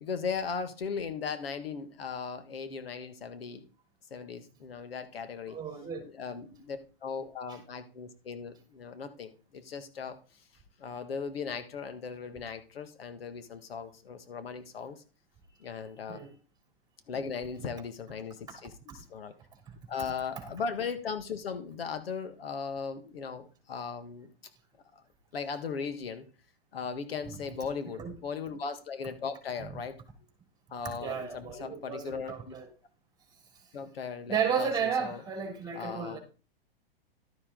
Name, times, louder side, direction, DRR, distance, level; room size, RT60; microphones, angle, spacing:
voice 1, 0.0-3.6 4.1-5.6 6.0-10.2 10.8-15.0 15.6-16.2 17.1-19.4 19.9-24.3 24.9-25.0 25.3-26.2 26.7-30.0 30.7-32.5 33.7-35.2 35.7-36.2, left 5 dB, 75° left, 1.6 m, -38 dB
voice 2, 5.5-6.1 16.1-16.3 19.7-19.8 27.9-28.1 31.0-32.7 34.3-36.2, right 7 dB, 15° right, 3.5 m, -33 dB
12.5 x 7.1 x 3.9 m
hypercardioid pair, 120°, 30 cm